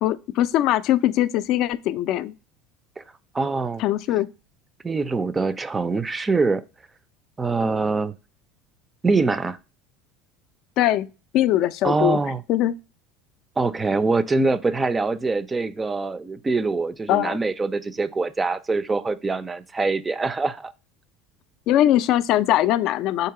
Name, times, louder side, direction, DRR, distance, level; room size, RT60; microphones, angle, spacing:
voice 1, 0.0-2.3 3.8-4.3 10.8-11.1 11.3-12.2 12.5-12.7 17.1-17.4 21.7-23.3, left 13 dB, 60° left, 0.3 m, -21 dB
voice 2, 3.3-3.8 4.8-6.6 7.4-8.1 9.0-9.6 11.8-12.4 13.6-20.7, right 3 dB, 20° right, 0.4 m, -24 dB
3.9 x 2.8 x 4.6 m
supercardioid pair, 100°, 0 cm